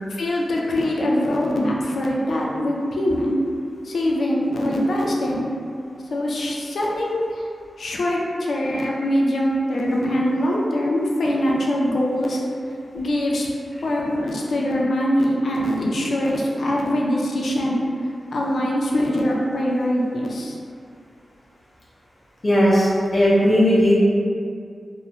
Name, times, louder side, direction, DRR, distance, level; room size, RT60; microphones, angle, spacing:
voice 1, 0.1-3.4 3.8-5.5 6.1-7.5 7.8-12.4 12.9-13.5 13.8-17.8 18.3-20.6, left 1 dB, 75° left, -3 dB, 0.3 m, -23 dB
voice 2, 22.4-23.9, equal, 35° left, -7 dB, 0.7 m, -17 dB
2.4 x 2.0 x 2.8 m, 2.3 s
wide cardioid pair, 80°, 0 cm